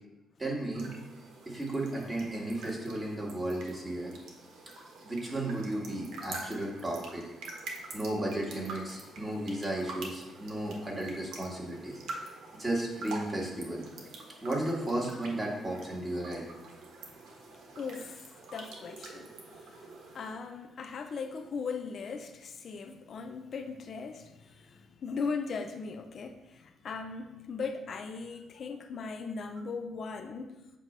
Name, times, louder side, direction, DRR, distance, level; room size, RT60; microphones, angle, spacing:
voice 1, 0.4-0.9 1.5-4.1 5.0-7.2 7.9-13.8 14.4-16.4, right 1 dB, 20° right, -3 dB, 1.9 m, -34 dB
sound 1, 0.7-20.3, right 3 dB, 75° right, 1.3 m, -46 dB
voice 2, 17.7-18.3 18.5-19.3 20.1-30.6, left 5 dB, 55° left, 7 dB, 0.4 m, -38 dB
8.1 x 2.8 x 5.2 m, 1.0 s
cardioid pair, 90°, 0 cm